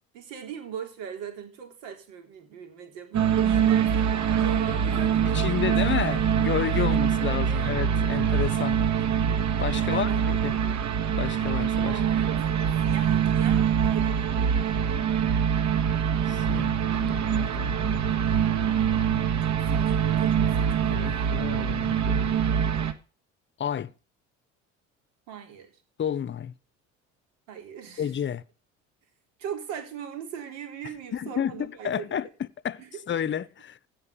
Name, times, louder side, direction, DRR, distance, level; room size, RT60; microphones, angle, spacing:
voice 1, 0.1-6.2 6.8-8.3 9.8-10.9 11.8-12.4 12.8-14.6 19.4-21.4 25.3-25.7 27.5-28.1 29.4-32.2 32.8-33.2, right 8 dB, 75° right, 3.9 m, -40 dB
sound 1, 3.1-22.9, right 8 dB, 50° right, 1.7 m, -24 dB
voice 2, 5.3-8.8 9.6-10.5 11.2-12.0 16.3-18.4 20.9-22.4 23.6-23.9 26.0-26.5 28.0-28.4 31.1-33.8, left 9 dB, 30° left, 0.8 m, -31 dB
16.5 x 5.5 x 7.1 m
hypercardioid pair, 70°, 37 cm